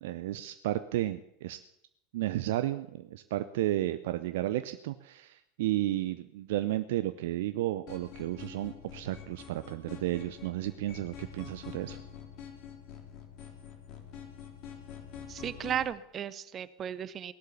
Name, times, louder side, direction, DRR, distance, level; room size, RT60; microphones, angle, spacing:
voice 1, 0.0-1.6 2.1-12.0, right 14 dB, 65° right, 10 dB, 0.7 m, -33 dB
sound 1, 7.9-15.9, left 8 dB, 50° left, 3.6 m, -46 dB
voice 2, 15.3-17.3, right 9 dB, 35° right, 16 dB, 0.8 m, -35 dB
18.0 x 11.5 x 7.0 m, 0.77 s
figure-of-eight pair, 80°, 0 cm